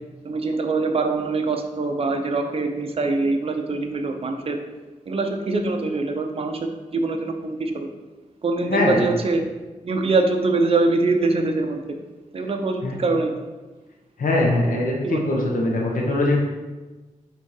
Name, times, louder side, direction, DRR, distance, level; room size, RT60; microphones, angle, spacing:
voice 1, 0.2-4.6 5.1-6.6 6.9-7.7 8.4-9.4 9.8-11.8 12.3-13.3 15.0-15.3, right 3 dB, 45° right, 4 dB, 0.7 m, -23 dB
voice 2, 8.7-9.1 12.8-12.9 14.2-16.4, left 2 dB, 90° left, -2 dB, 1.2 m, -21 dB
6.7 x 3.7 x 4.8 m, 1.2 s
wide cardioid pair, 150°, 14 cm